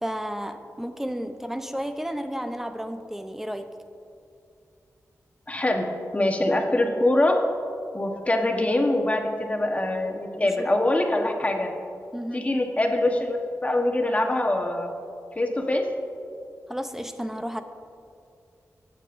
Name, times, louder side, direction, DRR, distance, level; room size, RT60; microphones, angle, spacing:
voice 1, 0.0-3.7 10.4-10.5 12.1-12.5 16.7-17.6, equal, 5° right, 8 dB, 0.6 m, -32 dB
voice 2, 5.5-5.9 6.1-7.4 7.9-11.7 12.3-13.4 13.6-14.9 15.4-15.9, left 1 dB, 25° left, 2 dB, 1.1 m, -23 dB
16.5 x 7.4 x 2.6 m, 2.5 s
wide cardioid pair, 85°, 6 cm